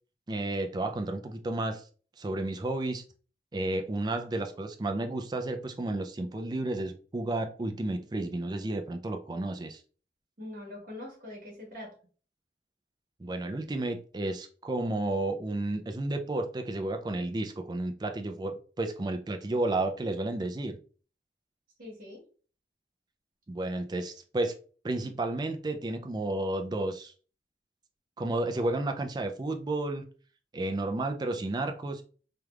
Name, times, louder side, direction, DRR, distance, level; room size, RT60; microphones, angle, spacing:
voice 1, 0.3-1.8 2.2-3.0 3.5-9.8 13.2-20.8 23.5-24.5 24.8-27.1 28.2-30.0 30.5-32.0, right 2 dB, 25° right, 6 dB, 0.4 m, -32 dB
voice 2, 10.4-11.9 21.8-22.2, left 1 dB, 50° right, -1 dB, 1.5 m, -43 dB
3.3 x 3.1 x 2.3 m, 0.39 s
head